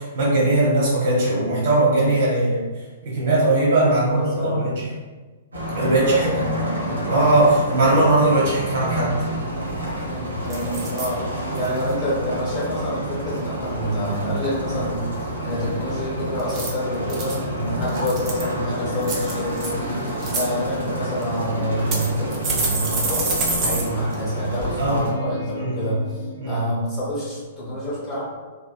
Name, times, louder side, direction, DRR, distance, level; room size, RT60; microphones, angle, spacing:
voice 1, 0.0-2.6 3.0-4.9 5.7-6.3 7.1-9.2 24.8-25.0 25.5-25.9 26.4-26.6, right 2 dB, 50° right, -5 dB, 0.9 m, -19 dB
voice 2, 3.8-4.7 5.8-7.3 10.1-28.2, equal, 20° left, -8 dB, 1.0 m, -28 dB
sound 1, 5.5-25.1, right 1 dB, 80° right, 0.7 m, -29 dB
sound 2, 9.4-9.5 9.7-10.1 10.5-11.1 11.5-11.9 16.4-17.4 17.9-18.5 19.0-19.7 20.1-20.4 21.2-21.3 21.9-23.8 24.1-24.2 24.6-24.7, right 3 dB, 30° right, 0.5 m, -27 dB
sound 3, 21.5-23.9 24.9-26.7, equal, 80° left, 0.4 m, -37 dB
2.9 x 2.2 x 2.3 m, 1.3 s
figure-of-eight pair, 110°, 0 cm